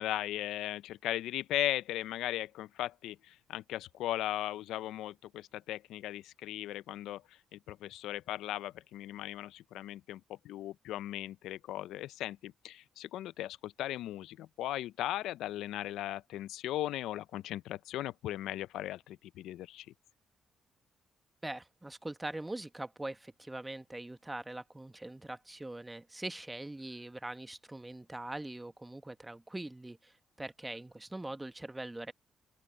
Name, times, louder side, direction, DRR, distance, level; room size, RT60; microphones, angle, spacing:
voice 1, 0.0-7.2 7.5-19.9, left 14 dB, 85° left, 0.4 m, -37 dB
voice 2, 21.4-32.1, right 2 dB, 10° right, 1.1 m, -42 dB
open air
cardioid pair, 90°, 0 cm